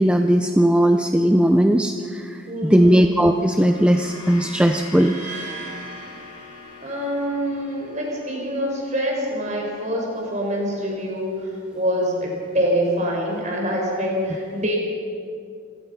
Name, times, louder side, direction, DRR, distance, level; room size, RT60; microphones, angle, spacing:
voice 1, 0.0-5.1, equal, 5° right, 5 dB, 0.6 m, -18 dB
voice 2, 2.5-3.0 6.8-14.8, equal, 35° right, -1 dB, 5.3 m, -25 dB
sound 1, 3.0-11.4, left 3 dB, 30° left, 7.1 m, -43 dB
sound 2, 4.9-7.0, right 5 dB, 55° right, 3.6 m, -39 dB
27.0 x 17.5 x 5.8 m, 2.4 s
head